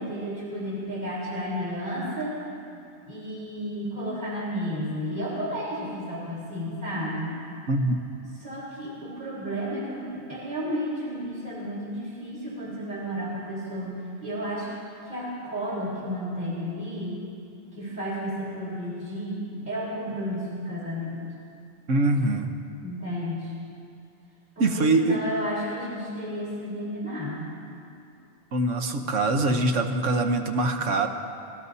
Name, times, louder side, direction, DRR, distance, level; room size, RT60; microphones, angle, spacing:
voice 1, 0.0-2.4 3.1-7.3 8.2-14.7 15.0-17.2 17.7-21.2 22.8-23.5 24.6-27.5, equal, 45° right, -8 dB, 4.1 m, -32 dB
voice 2, 7.7-8.0 21.9-22.5 24.6-25.2 28.5-31.1, right 2 dB, 90° right, 5 dB, 1.4 m, -23 dB
26.5 x 18.0 x 2.8 m, 2.6 s
omnidirectional pair, 1.2 m